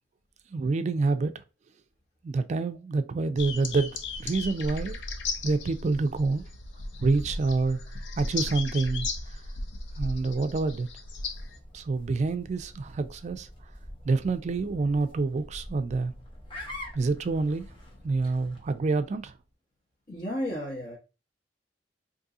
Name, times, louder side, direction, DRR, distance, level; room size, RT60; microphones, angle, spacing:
voice 1, 0.5-1.3 2.2-5.0 5.4-6.5 7.0-7.8 8.2-9.1 10.0-10.9 11.7-13.5 14.0-16.1 16.9-17.7 18.0-19.3, right 3 dB, 40° right, 0.3 m, -27 dB
sound 1, 3.4-11.6, left 3 dB, 90° left, 0.5 m, -36 dB
sound 2, 11.3-19.4, left 1 dB, 30° left, 0.8 m, -46 dB
voice 2, 20.1-21.0, equal, 50° left, 1.1 m, -33 dB
2.7 x 2.6 x 3.6 m
head